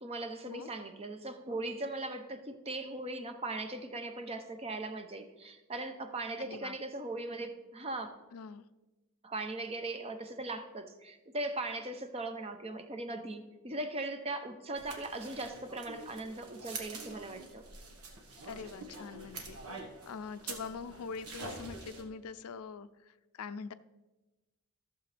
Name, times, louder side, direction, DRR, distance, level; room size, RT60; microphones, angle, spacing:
voice 1, 0.0-8.1 9.2-17.6, right 2 dB, 25° right, 8 dB, 0.7 m, -39 dB
voice 2, 6.5-6.8 8.3-8.6 18.5-23.7, left 5 dB, 75° left, 14 dB, 0.4 m, -44 dB
sound 1, 14.8-22.0, right 3 dB, 85° right, 1.4 m, -46 dB
14.0 x 6.9 x 3.4 m, 1.1 s
head